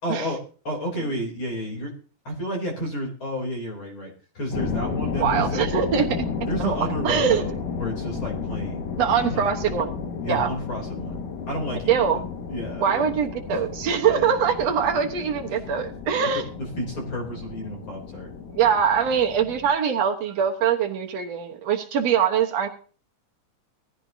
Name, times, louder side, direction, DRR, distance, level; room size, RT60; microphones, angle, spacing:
voice 1, 0.0-1.9 2.2-5.6 6.5-8.9 9.3-9.5 10.2-12.2 12.5-13.1 13.5-13.6 14.0-14.4 16.2-18.3, equal, 40° left, 0 dB, 4.0 m, -31 dB
sound 1, 4.5-19.7, left 6 dB, 75° left, 3.3 m, -33 dB
voice 2, 5.2-6.1 6.6-6.8 7.0-7.4 9.0-10.0 10.3-10.5 11.9-12.2 12.8-16.4 18.5-22.7, right 7 dB, 60° right, 4 dB, 2.2 m, -23 dB
18.5 x 14.0 x 2.8 m, 0.38 s
omnidirectional pair, 3.8 m